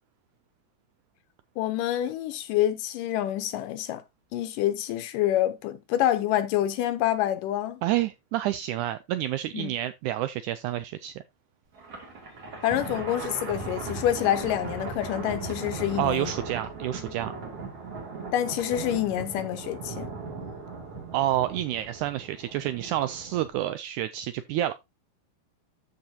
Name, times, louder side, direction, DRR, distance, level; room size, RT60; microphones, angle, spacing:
voice 1, 1.6-4.0 4.3-7.8 9.5-9.7 12.6-16.3 18.3-20.1, left 12 dB, 80° left, 2.3 m, -27 dB
voice 2, 7.8-11.1 16.0-17.3 21.1-24.7, right 13 dB, 80° right, 1.8 m, -29 dB
Thunder, 11.7-23.5, right 4 dB, 50° right, 3.3 m, -38 dB
13.5 x 4.9 x 2.7 m
omnidirectional pair, 3.9 m